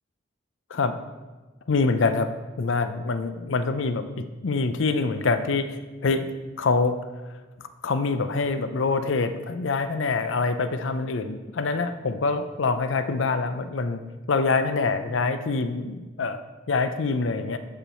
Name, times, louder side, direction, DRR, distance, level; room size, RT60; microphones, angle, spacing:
voice 1, 1.7-2.3 2.6-7.4 7.8-14.0 14.3-16.4 16.7-17.6, left 4 dB, 70° left, 10 dB, 0.5 m, -25 dB
12.0 x 4.5 x 4.4 m, 1.3 s
head